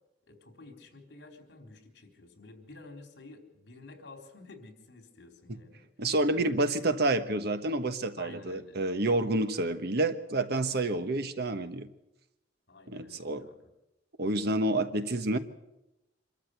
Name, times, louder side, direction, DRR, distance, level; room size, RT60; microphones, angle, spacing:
voice 1, 0.2-5.8 8.2-8.8 10.8-11.2 12.7-13.7, left 3 dB, 65° left, 5 dB, 4.0 m, -51 dB
voice 2, 6.0-11.9 12.9-13.4 14.2-15.4, right 2 dB, 60° right, 10 dB, 1.2 m, -29 dB
25.5 x 13.5 x 8.2 m, 0.94 s
head